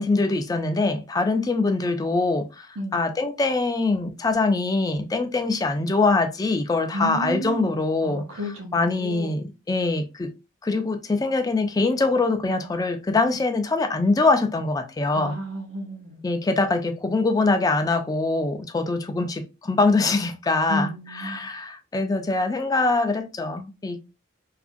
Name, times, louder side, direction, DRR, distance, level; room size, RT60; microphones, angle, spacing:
voice 1, 0.0-8.4 8.7-10.3 10.6-15.3 16.2-24.0, left 3 dB, 20° left, 0.3 m, -23 dB
voice 2, 2.8-3.1 6.9-9.4 15.1-16.2 20.7-21.5, equal, 75° right, 0.7 m, -32 dB
2.8 x 2.4 x 2.5 m
head